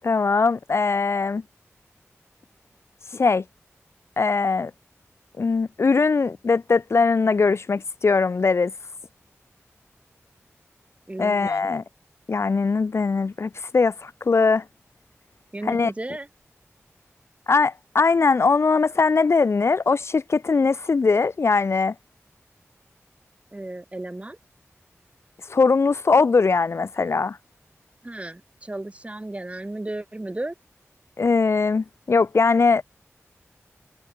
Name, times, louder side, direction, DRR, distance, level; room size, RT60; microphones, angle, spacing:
voice 1, 0.0-1.4 3.1-3.4 4.2-4.7 5.4-8.7 11.2-11.8 12.3-14.6 15.7-15.9 17.5-21.9 25.5-27.4 31.2-32.8, left 4 dB, 60° left, 0.5 m, -21 dB
voice 2, 11.1-11.7 15.5-16.3 23.5-24.4 28.0-30.5, right 2 dB, 25° right, 2.1 m, -34 dB
wide cardioid pair, 75°, 5 cm